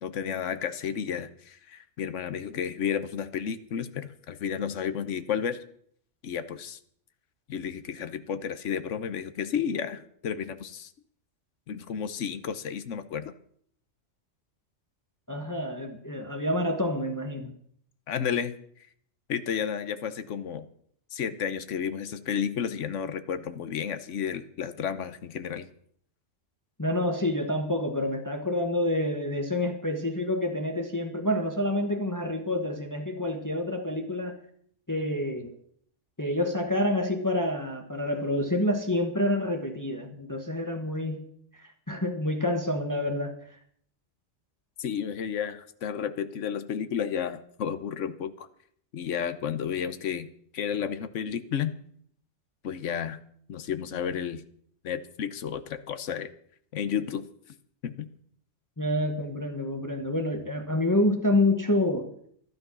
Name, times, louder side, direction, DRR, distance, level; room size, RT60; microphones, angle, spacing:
voice 1, 0.0-5.6 6.2-6.8 7.5-10.9 11.7-13.3 18.1-18.5 19.3-20.7 21.1-25.7 44.8-48.5 48.9-51.7 52.6-53.2 53.5-54.4 54.8-56.3 56.7-57.3 57.8-58.1, left 8 dB, 75° left, 11 dB, 1.2 m, -32 dB
voice 2, 15.3-17.5 26.8-34.4 34.9-35.5 36.2-41.3 41.9-43.3 58.8-62.1, left 1 dB, 15° left, 4 dB, 1.3 m, -28 dB
12.5 x 12.0 x 6.2 m, 0.64 s
omnidirectional pair, 1.3 m